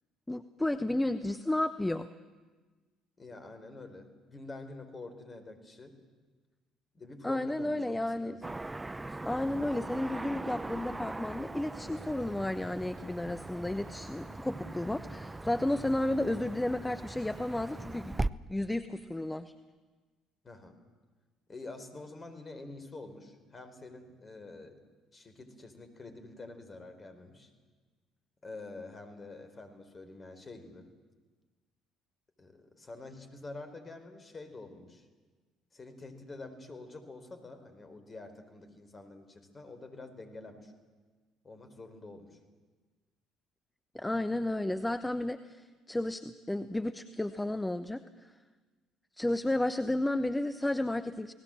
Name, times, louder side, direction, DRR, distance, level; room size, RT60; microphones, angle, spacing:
voice 1, 0.3-2.1 7.2-8.3 9.2-18.2 18.5-19.5 43.9-48.3 49.2-51.3, left 1 dB, 10° left, 11 dB, 1.0 m, -32 dB
voice 2, 3.2-5.9 6.9-8.4 9.1-9.2 20.4-20.8 21.5-24.8 25.1-27.5 28.4-30.9 32.4-35.0 35.7-40.7 41.4-42.4, left 2 dB, 30° left, 8 dB, 4.4 m, -47 dB
Car passing by / Traffic noise roadway noise, 8.4-18.3, right 2 dB, 15° right, 0.7 m, -40 dB
29.0 x 19.0 x 7.8 m, 1.3 s
figure-of-eight pair, 55°, 0 cm